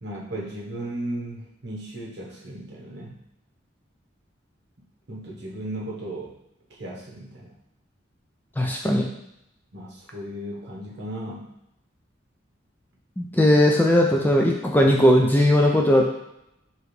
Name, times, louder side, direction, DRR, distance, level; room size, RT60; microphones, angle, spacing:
voice 1, 0.0-3.2 5.1-6.3 6.7-7.5 9.7-11.5, right 1 dB, 60° right, -4 dB, 1.1 m, -35 dB
voice 2, 8.6-9.1 13.2-16.1, left 1 dB, 10° left, 0 dB, 0.3 m, -18 dB
4.9 x 3.0 x 3.2 m, 0.82 s
head